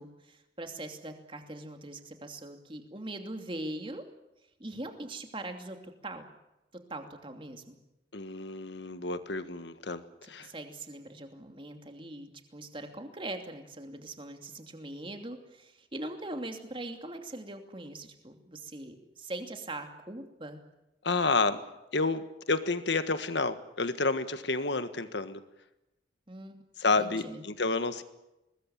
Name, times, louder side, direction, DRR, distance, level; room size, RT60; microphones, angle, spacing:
voice 1, 0.0-4.0 4.6-5.8 6.0-6.3 6.7-7.8 10.4-20.6 26.3-26.6 27.0-27.4, right 1 dB, 30° right, 5 dB, 2.7 m, -41 dB
voice 2, 8.1-10.5 21.0-25.4 26.8-28.0, left 3 dB, 70° left, 11 dB, 1.6 m, -30 dB
23.0 x 20.0 x 9.0 m, 0.95 s
head